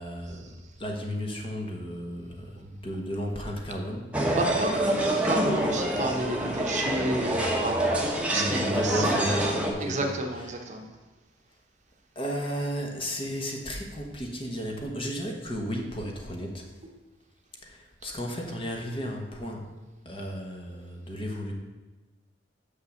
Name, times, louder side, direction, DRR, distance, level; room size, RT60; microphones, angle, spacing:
voice 1, 0.0-4.1 8.3-10.6 12.1-16.7 17.6-19.7 20.0-21.5, equal, 30° left, 1 dB, 1.2 m, -34 dB
sound 1, 4.1-9.7, right 1 dB, 5° right, 1.0 m, -26 dB
voice 2, 4.4-9.3 9.8-10.8, right 1 dB, 40° right, 3 dB, 0.9 m, -31 dB
6.6 x 5.5 x 7.0 m, 1.2 s
head